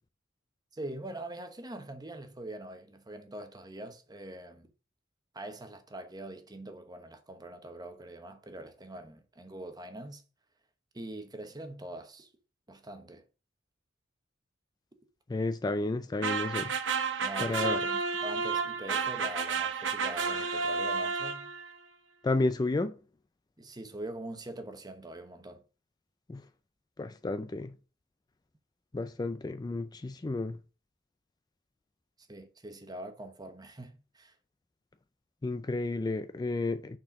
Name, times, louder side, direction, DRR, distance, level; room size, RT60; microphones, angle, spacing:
voice 1, 0.7-4.7 5.3-10.2 10.9-12.3 12.7-13.2 17.2-21.5 23.6-25.6 32.3-34.3, right 1 dB, 20° right, 1.0 m, -43 dB
voice 2, 15.3-16.7 17.4-17.8 22.2-22.9 26.3-26.4 27.0-27.7 28.9-30.6 35.4-37.0, left 2 dB, 20° left, 0.3 m, -31 dB
sound 1, 16.2-21.7, right 5 dB, 75° right, 1.1 m, -31 dB
6.1 x 4.4 x 5.7 m
head